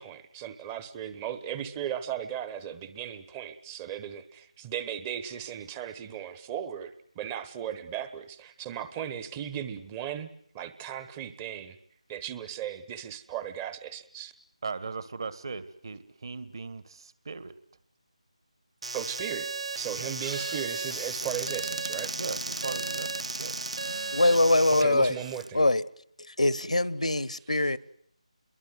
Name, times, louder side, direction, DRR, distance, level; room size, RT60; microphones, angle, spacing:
voice 1, 0.0-10.3 10.5-11.8 12.1-14.3 18.9-19.5 19.7-22.1 24.8-25.7 27.6-27.7, right 9 dB, 15° right, 1.0 m, -36 dB
voice 2, 14.6-17.5 19.9-20.1 22.2-23.6, right 4 dB, 40° right, 1.8 m, -38 dB
sound 1, 18.8-24.8, right 3 dB, 55° right, 1.3 m, -35 dB
Squeak / Cupboard open or close, 20.2-25.5, right 1 dB, 80° right, 1.4 m, -39 dB
voice 3, 24.1-25.1 25.5-25.8 26.3-27.8, left 2 dB, 70° left, 1.2 m, -23 dB
29.5 x 22.5 x 7.9 m
figure-of-eight pair, 160°, 4 cm